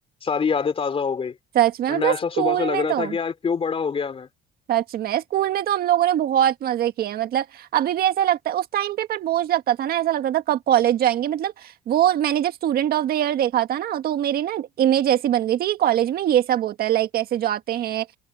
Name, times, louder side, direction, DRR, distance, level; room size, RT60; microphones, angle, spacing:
voice 1, 0.2-1.3 1.9-4.3, left 6 dB, 35° left, 3.2 m, -25 dB
voice 2, 1.6-3.2 4.7-18.1, right 11 dB, 65° right, 1.8 m, -22 dB
cardioid pair, 110°, 17 cm